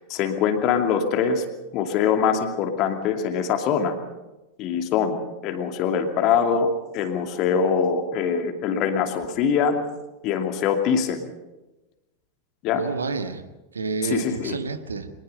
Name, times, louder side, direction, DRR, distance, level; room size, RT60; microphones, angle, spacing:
voice 1, 0.1-1.4 1.7-4.0 4.6-5.2 5.4-6.7 6.9-9.8 10.2-11.2 12.6-12.8 14.0-14.6, left 7 dB, 40° left, 6 dB, 2.6 m, -23 dB
voice 2, 12.7-13.4 13.7-15.1, right 4 dB, 75° right, 9 dB, 1.5 m, -29 dB
24.5 x 20.0 x 5.6 m, 1.1 s
figure-of-eight pair, 90°, 0 cm